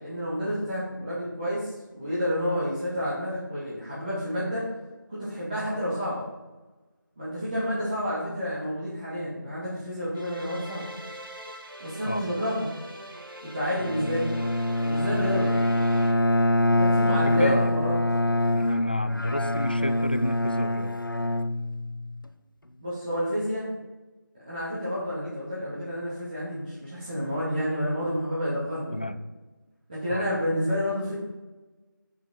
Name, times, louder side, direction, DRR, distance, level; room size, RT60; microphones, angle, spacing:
voice 1, 0.0-4.6 5.1-6.3 7.2-10.9 11.8-12.6 13.5-14.3 14.8-15.5 16.7-17.9 22.8-23.7 24.4-29.0 29.9-31.1, equal, 25° right, -11 dB, 2.8 m, -29 dB
sound 1, 10.2-16.1, equal, 85° right, 2.2 m, -42 dB
Bowed string instrument, 13.8-22.2, left 1 dB, 75° left, 0.8 m, -25 dB
voice 2, 17.3-17.7 18.5-20.9 28.9-29.2 30.1-30.2, equal, 25° left, 10 dB, 0.4 m, -30 dB
8.8 x 7.1 x 4.6 m, 1.2 s
figure-of-eight pair, 170°, 11 cm